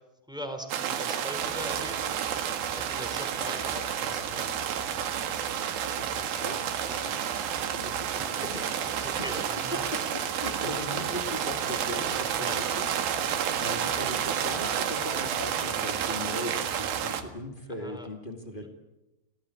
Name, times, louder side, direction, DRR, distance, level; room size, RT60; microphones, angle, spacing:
voice 1, 0.3-2.0 2.7-4.6 8.1-9.8 12.4-12.6 17.8-18.1, equal, ahead, 5 dB, 3.3 m, -40 dB
sound 1, 0.7-17.2, right 9 dB, 60° right, 3.1 m, -30 dB
sound 2, 1.4-17.4, right 2 dB, 80° right, 4.5 m, -49 dB
voice 2, 6.0-7.2 7.7-8.6 9.3-9.4 9.7-18.7, left 1 dB, 40° left, 4 dB, 0.7 m, -39 dB
26.5 x 18.0 x 8.6 m, 0.95 s
omnidirectional pair, 5.3 m